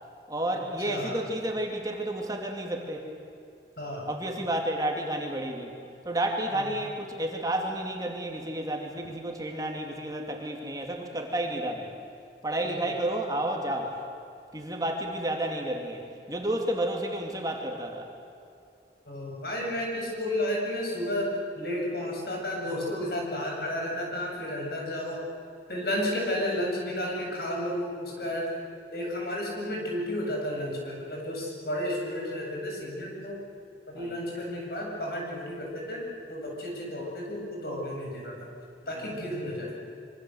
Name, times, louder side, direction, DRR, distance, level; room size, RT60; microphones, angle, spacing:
voice 1, 0.3-3.1 4.1-5.8 6.0-11.9 12.4-14.0 14.5-16.0 16.3-18.1 34.0-34.2 39.2-39.3, right 1 dB, 20° right, 1 dB, 2.5 m, -31 dB
voice 2, 0.9-1.2 3.8-4.1 6.5-6.7 12.6-12.8 19.1-25.2 25.7-28.7 28.9-33.4 33.9-38.5 38.9-39.7, left 1 dB, 60° left, -1 dB, 7.8 m, -32 dB
25.5 x 24.5 x 7.9 m, 2.6 s
head